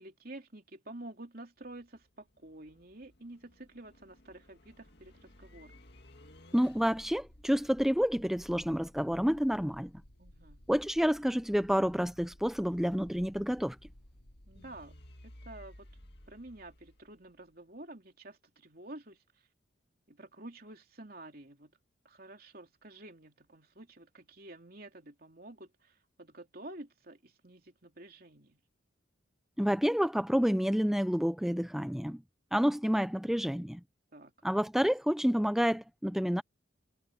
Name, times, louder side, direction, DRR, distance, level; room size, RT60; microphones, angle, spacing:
voice 1, 0.0-5.8 10.2-10.6 14.5-15.9 16.3-19.2 20.1-21.7 22.0-28.6 34.1-34.3, right 1 dB, 50° right, 3.1 m, -50 dB
sound 1, 1.6-17.6, left 1 dB, 55° left, 2.2 m, -56 dB
voice 2, 6.5-9.9 10.7-13.8 29.6-32.2 32.5-33.8 34.4-36.4, equal, ahead, 0.5 m, -29 dB
head